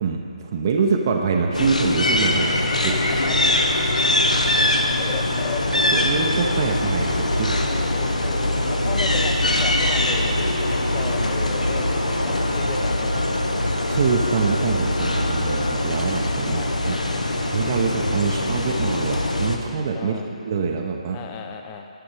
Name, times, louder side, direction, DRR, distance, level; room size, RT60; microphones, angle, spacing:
voice 1, 0.0-3.0 5.9-7.6 13.9-17.0 17.4-21.2, right 5 dB, 35° right, 2 dB, 0.7 m, -25 dB
sound 1, 1.5-19.6, left 1 dB, 80° left, 1.0 m, -22 dB
voice 2, 2.3-3.6 5.0-6.2 7.6-12.0 12.2-13.2 16.5-16.7 19.9-20.3 21.1-21.9, left 6 dB, 20° left, 5 dB, 0.6 m, -35 dB
11.0 x 8.7 x 4.8 m, 2.6 s
figure-of-eight pair, 145°, 4 cm